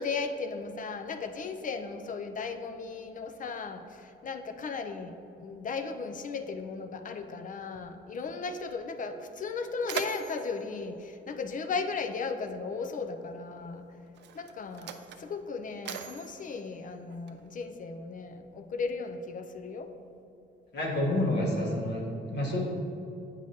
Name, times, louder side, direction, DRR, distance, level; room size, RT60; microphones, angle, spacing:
voice 1, 0.0-3.8 4.2-5.1 5.4-13.8 14.3-19.9, left 4 dB, 40° left, 7 dB, 0.5 m, -36 dB
Mechanisms, 8.9-9.0 9.4-12.1 13.1-13.2 14.1-17.6, right 8 dB, 60° right, 0.4 m, -42 dB
voice 2, 20.7-22.6, left 1 dB, 60° left, -3 dB, 1.2 m, -29 dB
8.1 x 4.9 x 2.8 m, 2.7 s
cardioid pair, 90°, 20 cm